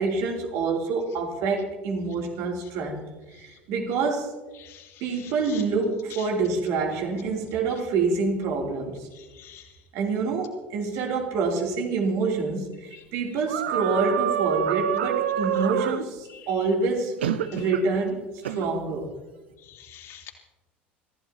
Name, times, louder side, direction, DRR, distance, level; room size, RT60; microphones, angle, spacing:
voice 1, 0.0-3.1 3.4-4.3 5.0-9.1 9.9-17.2 17.5-18.2 18.5-19.1, right 4 dB, 55° right, 0 dB, 3.2 m, -27 dB
sound 1, 13.5-16.0 17.2-17.8 18.4-18.6, right 9 dB, 70° right, 0.9 m, -26 dB
voice 2, 19.8-20.3, left 11 dB, 50° left, 0 dB, 3.5 m, -46 dB
25.0 x 15.5 x 2.9 m, 1.2 s
figure-of-eight pair, 70°, 6 cm